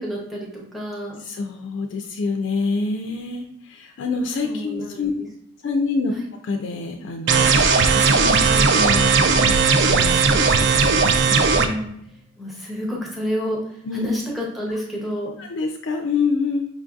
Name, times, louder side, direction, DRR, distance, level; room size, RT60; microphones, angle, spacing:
voice 1, 0.0-1.2 4.4-5.1 6.1-6.3 11.5-11.9 12.4-15.3, equal, ahead, -2 dB, 0.6 m, -29 dB
voice 2, 1.2-5.1 5.6-6.1 6.4-7.6 7.9-11.4 13.8-14.1 15.4-16.7, left 4 dB, 60° left, 4 dB, 0.3 m, -27 dB
sound 1, 7.3-11.7, right 5 dB, 55° right, 0.3 m, -17 dB
sound 2, 9.2-11.8, left 1 dB, 40° right, 0.7 m, -33 dB
5.0 x 2.5 x 2.3 m, 0.73 s
head